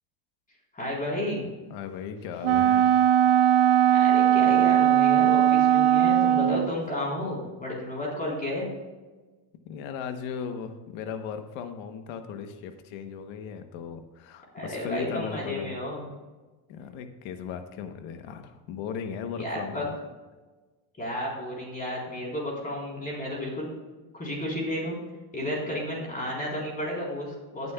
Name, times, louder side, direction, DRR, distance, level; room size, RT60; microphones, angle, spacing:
voice 1, 0.7-1.5 3.9-8.7 14.5-16.1 19.3-19.8 21.0-23.7 24.1-25.0 25.3-27.7, left 1 dB, 20° left, -3 dB, 4.0 m, -32 dB
voice 2, 1.7-2.9 9.6-15.7 16.7-19.9, left 7 dB, 85° left, 8 dB, 1.1 m, -37 dB
Wind instrument woodwind instrument, 2.4-6.7, right 11 dB, 70° right, 0.6 m, -19 dB
17.5 x 9.5 x 2.3 m, 1.2 s
cardioid pair, 140°, 44 cm